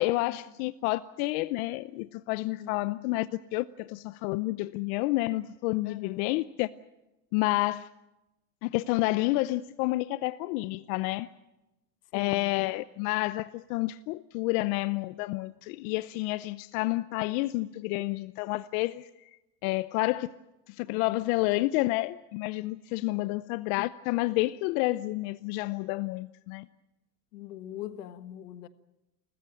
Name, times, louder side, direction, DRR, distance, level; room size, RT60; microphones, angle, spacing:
voice 1, 0.0-6.7 7.3-7.9 8.6-11.3 12.1-19.1 19.6-20.3 20.7-26.7, left 19 dB, 70° left, 0.8 m, -29 dB
voice 2, 5.8-6.3 12.1-12.5 20.8-21.1 23.3-23.4 27.3-28.7, left 12 dB, 90° left, 1.6 m, -43 dB
29.5 x 14.5 x 9.0 m
supercardioid pair, 120°, 45 cm